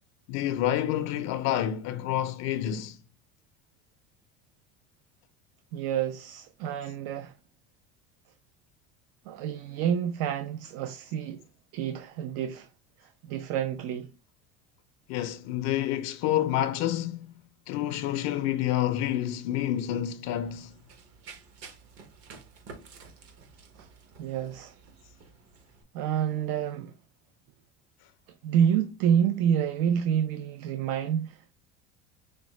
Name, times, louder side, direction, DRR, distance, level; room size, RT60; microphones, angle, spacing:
voice 1, 0.3-3.0 15.1-17.3 17.7-20.8, left 12 dB, 60° left, 0.5 m, -28 dB
voice 2, 5.7-7.3 9.3-11.4 11.7-12.7 13.0-14.1 23.8-23.9 24.2-24.8 25.9-26.9 28.4-31.5, right 9 dB, 70° right, 0.5 m, -28 dB
Run, 20.2-25.8, right 4 dB, 50° right, 1.0 m, -51 dB
5.0 x 2.1 x 3.1 m
supercardioid pair, 125°, 30 cm